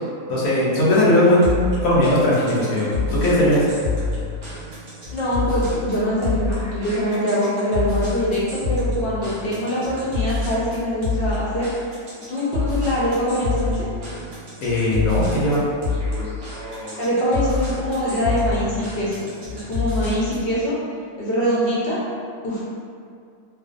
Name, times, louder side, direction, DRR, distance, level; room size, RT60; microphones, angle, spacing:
voice 1, 0.3-1.4 1.8-3.7 14.6-15.6, left 1 dB, 80° left, -7 dB, 1.0 m, -18 dB
sound 1, 1.4-20.5, left 4 dB, 55° right, 0.8 m, -28 dB
voice 2, 5.1-11.7 12.3-13.9 17.0-20.7 21.2-22.0 22.4-22.6, equal, 60° left, -8 dB, 0.7 m, -23 dB
2.5 x 2.0 x 2.4 m, 2.3 s
omnidirectional pair, 1.5 m